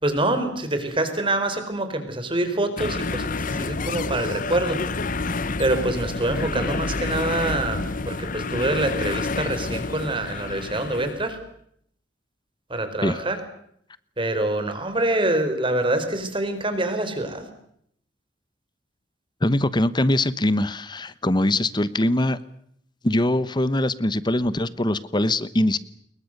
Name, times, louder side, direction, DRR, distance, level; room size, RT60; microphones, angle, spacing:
voice 1, 0.0-4.8 5.6-11.4 12.7-13.4 14.2-17.5, right 1 dB, 30° right, 8 dB, 4.7 m, -25 dB
sound 1, 2.8-11.3, left 3 dB, 45° left, 1.0 m, -29 dB
voice 2, 19.4-22.4 23.0-25.8, left 1 dB, 25° left, 16 dB, 1.0 m, -22 dB
28.5 x 22.5 x 6.7 m, 0.69 s
head